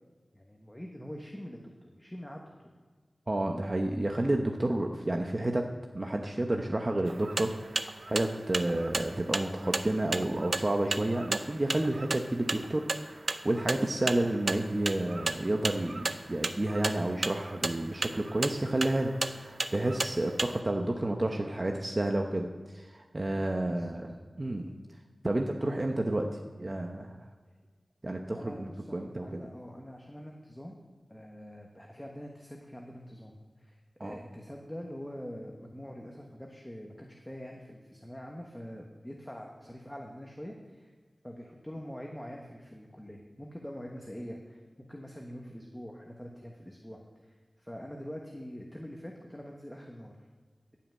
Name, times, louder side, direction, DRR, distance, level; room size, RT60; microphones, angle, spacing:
voice 1, 0.3-2.7 23.7-23.9 28.3-30.8 31.1-40.9 41.2-44.6 44.9-50.2, equal, 10° left, 0 dB, 1.2 m, -44 dB
voice 2, 3.3-5.6 5.9-24.7 25.2-26.3 26.6-27.3 28.0-29.4 34.0-34.2, right 1 dB, 40° right, 3 dB, 0.8 m, -30 dB
sound 1, 7.1-20.6, right 3 dB, 65° right, 0.6 m, -34 dB
17.0 x 5.7 x 7.6 m, 1.5 s
wide cardioid pair, 70°, 0 cm